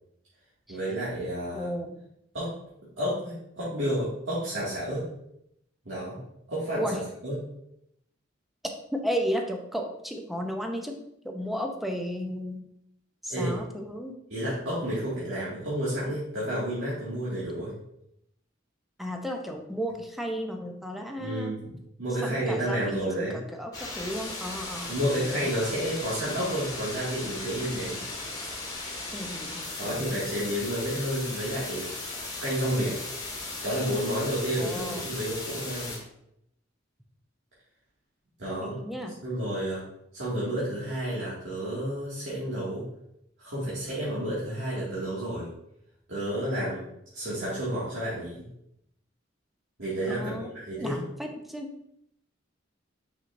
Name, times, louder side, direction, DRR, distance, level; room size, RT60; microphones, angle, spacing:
voice 1, 0.7-1.7 2.3-2.5 3.0-5.1 5.8-6.2 6.5-6.8 7.2-7.3 13.3-13.6 14.3-17.7 21.2-21.6 22.0-23.4 24.8-28.0 29.8-33.0 33.6-36.0 38.4-38.7 39.2-39.8 40.1-42.8 43.4-45.5 46.1-46.8 47.1-48.5 49.8-50.9, equal, 80° right, -10 dB, 2.1 m, -30 dB
voice 2, 1.5-2.0 6.7-7.0 8.6-11.0 11.2-12.6 13.2-14.1 19.0-21.5 22.2-25.5 28.3-28.6 29.1-30.1 34.6-35.1 38.6-39.2 50.1-50.5 50.8-51.7, equal, ahead, 3 dB, 0.7 m, -34 dB
sound 1, 23.7-36.0, left 2 dB, 20° left, 1.4 m, -37 dB
6.1 x 5.9 x 2.6 m, 0.77 s
head